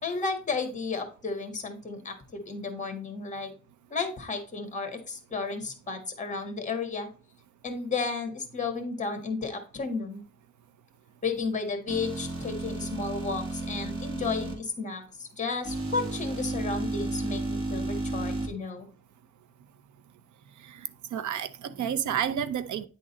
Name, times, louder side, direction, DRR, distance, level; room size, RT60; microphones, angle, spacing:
voice 1, 0.0-3.5 3.9-7.1 7.6-10.2 11.2-18.9, left 4 dB, 25° left, 6 dB, 1.6 m, -33 dB
sound 1, 11.9-14.5 15.6-18.5, right 2 dB, 50° right, 2.1 m, -32 dB
voice 2, 21.1-22.9, right 9 dB, 80° right, 12 dB, 0.7 m, -30 dB
9.8 x 3.8 x 4.0 m, 0.38 s
wide cardioid pair, 170°, 29 cm